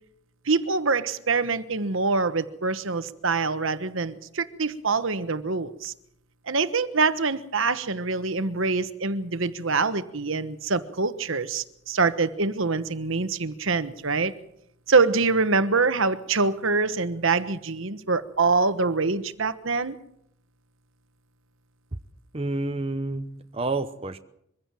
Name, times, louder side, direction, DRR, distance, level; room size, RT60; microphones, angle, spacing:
voice 1, 0.4-5.9 6.5-14.3 14.9-20.0, right 4 dB, 60° right, 1.2 m, -25 dB
voice 2, 22.3-24.2, right 2 dB, 25° right, 0.9 m, -29 dB
23.5 x 16.0 x 7.6 m
head